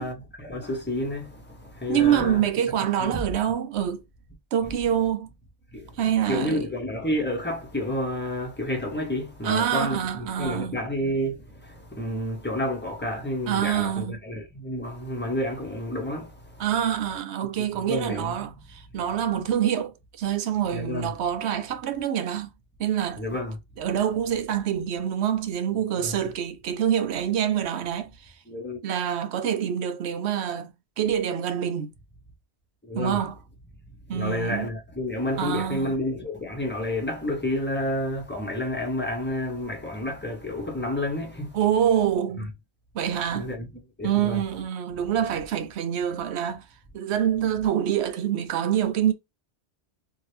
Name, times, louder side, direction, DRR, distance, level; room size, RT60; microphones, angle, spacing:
voice 1, 0.0-2.5 3.0-3.2 4.7-4.8 5.7-5.9 6.3-16.3 16.6-16.7 17.6-18.5 20.7-21.1 23.2-23.6 26.0-26.2 28.5-28.8 32.8-33.2 34.1-41.5 43.3-43.7 44.0-44.4, left 1 dB, 10° left, 1.0 m, -30 dB
voice 2, 1.9-4.0 4.5-5.3 6.0-6.7 9.4-10.7 13.5-14.2 16.6-22.5 22.8-23.2 23.8-28.3 28.8-31.9 32.9-33.4 34.1-34.7 35.4-35.9 41.5-42.5 42.9-43.5 44.0-46.6 46.9-49.1, right 9 dB, 80° right, 0.9 m, -26 dB
2.8 x 2.6 x 3.2 m
omnidirectional pair, 1.1 m